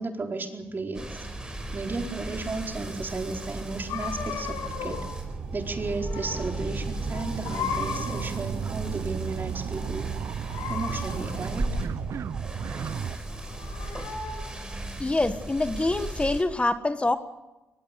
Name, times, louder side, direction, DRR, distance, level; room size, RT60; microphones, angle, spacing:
voice 1, 0.0-5.0 5.5-10.1 10.7-11.7, right 3 dB, 40° right, 3 dB, 4.3 m, -34 dB
sound 1, 0.7-13.2, right 9 dB, 70° right, 0.9 m, -36 dB
sound 2, 0.9-16.4, right 1 dB, 15° right, 5.6 m, -36 dB
sound 3, 3.9-5.2 5.5-6.6 6.9-8.5 10.4-11.6 13.2-14.7, left 6 dB, 85° left, 5.7 m, -36 dB
voice 2, 15.0-17.2, left 2 dB, 20° left, 10 dB, 1.4 m, -25 dB
23.0 x 20.5 x 7.0 m, 1.1 s
supercardioid pair, 60°, 5 cm